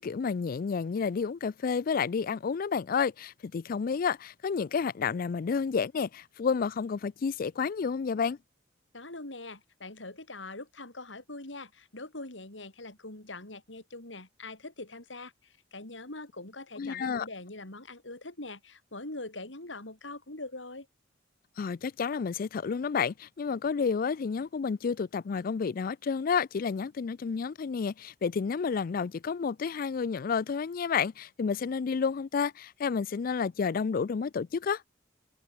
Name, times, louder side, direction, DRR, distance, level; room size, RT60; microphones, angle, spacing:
voice 1, 0.0-8.4 16.8-17.3 21.6-34.8, left 5 dB, 50° left, 0.4 m, -30 dB
voice 2, 8.9-20.9, left 2 dB, 80° left, 4.7 m, -43 dB
head